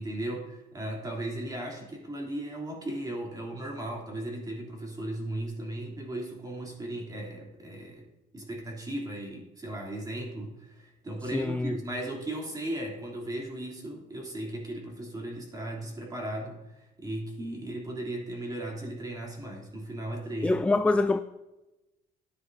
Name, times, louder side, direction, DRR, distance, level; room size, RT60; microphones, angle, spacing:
voice 1, 0.0-8.1 8.3-20.6, right 1 dB, 20° right, 3.1 m, -36 dB
voice 2, 11.3-11.8 20.4-21.2, left 2 dB, 5° left, 0.3 m, -25 dB
13.0 x 9.7 x 2.7 m
cardioid pair, 110°, 17 cm